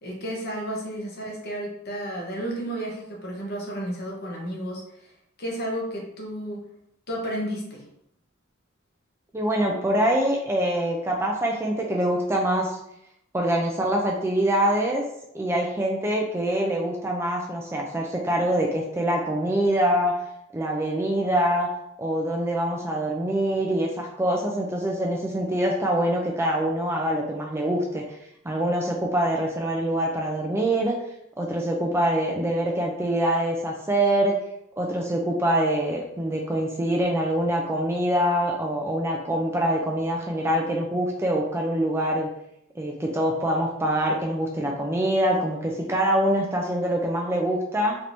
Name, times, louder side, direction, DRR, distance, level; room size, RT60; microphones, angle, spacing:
voice 1, 0.0-5.1 5.4-6.6 7.1-7.8, right 1 dB, 50° left, -1 dB, 0.8 m, -32 dB
voice 2, 9.3-12.8 13.3-15.0 15.3-20.1 20.5-21.7 22.0-28.2 28.4-31.0 31.4-34.4 34.8-42.3 42.8-48.0, right 1 dB, 10° right, -1 dB, 0.3 m, -24 dB
3.2 x 2.9 x 2.6 m, 0.78 s
head